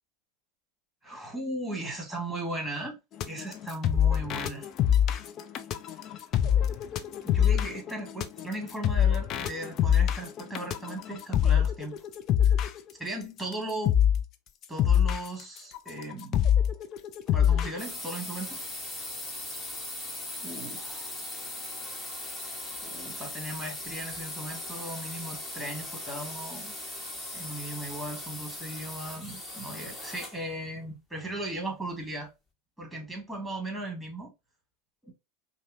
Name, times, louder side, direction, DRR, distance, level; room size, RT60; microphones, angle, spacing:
voice 1, 1.0-2.9 3.3-4.7 7.2-11.9 12.4-12.6 13.0-14.0 14.7-16.4 17.3-18.6 20.4-21.1 22.8-26.7 27.3-32.3 32.8-34.3 35.0-35.1, right 1 dB, ahead, 1.6 m, -37 dB
sound 1, 3.2-12.8 13.4-13.5 13.9-14.2 14.6-17.8, left 9 dB, 40° left, 0.4 m, -24 dB
sound 2, 17.8-30.5, left 1 dB, 20° left, 1.3 m, -39 dB
5.2 x 2.0 x 2.5 m
figure-of-eight pair, 85°, 0 cm